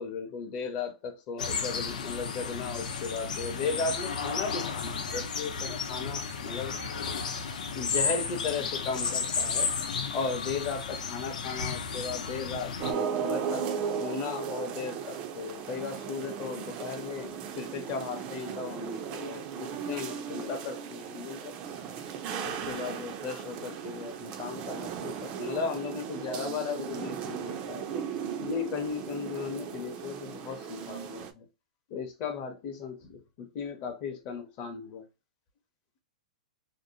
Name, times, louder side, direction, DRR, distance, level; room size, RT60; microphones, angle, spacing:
voice 1, 0.0-6.7 7.7-13.7 14.0-21.6 22.4-28.0 28.4-31.5 31.9-35.0, left 5 dB, 30° left, 0.6 m, -36 dB
sound 1, 1.4-12.9, left 5 dB, 75° left, 0.6 m, -33 dB
sound 2, 12.8-31.3, right 7 dB, 25° right, 0.3 m, -36 dB
2.7 x 2.0 x 2.6 m
supercardioid pair, 160°, 4 cm